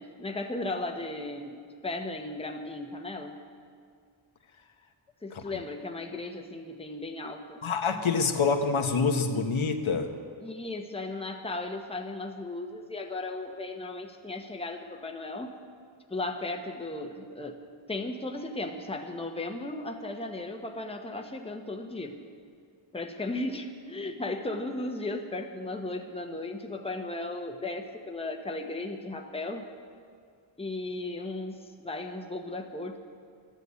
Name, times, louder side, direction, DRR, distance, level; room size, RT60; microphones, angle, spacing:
voice 1, 0.0-3.3 5.2-7.6 10.4-15.6 16.1-17.6 17.9-22.2 22.9-29.6 30.6-33.0, left 2 dB, 10° left, 3 dB, 1.1 m, -36 dB
voice 2, 7.6-10.1, left 5 dB, 75° left, 5 dB, 1.2 m, -26 dB
13.0 x 10.5 x 8.3 m, 2.1 s
wide cardioid pair, 115°, 48 cm